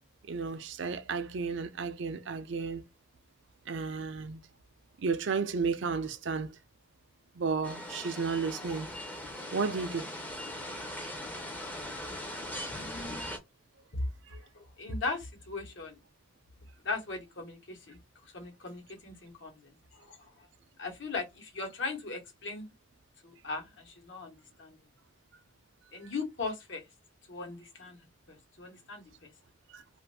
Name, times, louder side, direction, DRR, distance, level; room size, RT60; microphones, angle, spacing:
voice 1, 0.3-2.8 3.7-4.4 5.0-6.6 7.4-8.9 9.5-10.1 29.7-29.8, right 5 dB, 65° right, 0.4 m, -33 dB
sound 1, 7.6-13.4, left 1 dB, 10° left, 0.5 m, -40 dB
voice 2, 12.7-13.3 13.9-14.0 14.5-16.0 16.8-18.0 18.3-20.5 20.8-22.7 23.2-24.8 25.9-26.9 27.3-29.3, left 3 dB, 65° left, 1.1 m, -39 dB
2.6 x 2.4 x 3.3 m
head